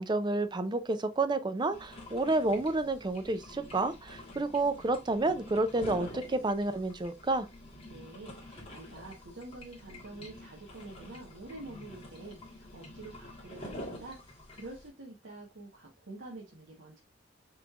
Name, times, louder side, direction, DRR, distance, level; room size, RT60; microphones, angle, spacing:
voice 1, 0.0-7.5, right 2 dB, 25° right, 0.5 m, -30 dB
sound 1, 1.7-14.9, left 1 dB, 30° left, 1.6 m, -47 dB
voice 2, 7.9-17.0, right 2 dB, 80° right, 1.2 m, -47 dB
5.9 x 3.2 x 2.4 m
head